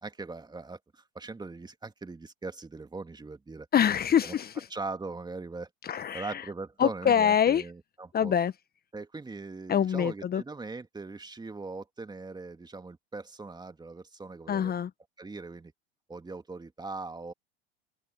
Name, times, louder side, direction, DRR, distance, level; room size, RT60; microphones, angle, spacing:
voice 1, 0.0-3.7 4.2-4.3 4.7-5.7 6.1-8.3 8.9-14.7 15.2-15.7 16.1-17.3, right 3 dB, 15° right, 2.3 m, -40 dB
voice 2, 3.7-4.7 5.8-6.4 6.8-7.6 8.1-8.5 9.7-10.4 14.5-14.9, left 8 dB, 30° left, 1.3 m, -25 dB
open air
hypercardioid pair, 80°, 31 cm